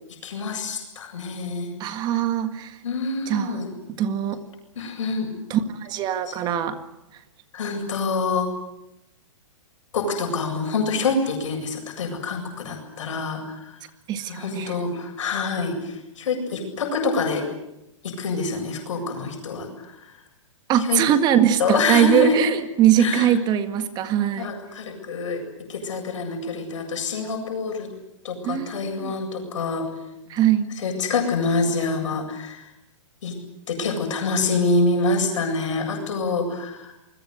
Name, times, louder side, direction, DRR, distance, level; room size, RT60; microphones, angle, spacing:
voice 1, 0.2-1.7 2.1-2.2 2.8-3.7 4.7-5.3 7.5-8.5 9.9-13.8 14.3-17.5 18.0-20.1 20.8-21.0 21.6-22.4 23.0-23.3 24.3-25.4 25.7-27.9 28.2-29.9 30.8-32.7 33.2-33.4 33.7-36.9, left 3 dB, 70° left, 3 dB, 8.0 m, -26 dB
voice 2, 1.8-2.8 3.3-3.6 4.0-4.4 5.5-6.8 14.1-14.8 20.7-24.5 28.4-29.1 30.3-30.7, right 10 dB, 25° right, 9 dB, 1.8 m, -21 dB
28.5 x 21.5 x 8.0 m, 0.87 s
hypercardioid pair, 140°, 16 cm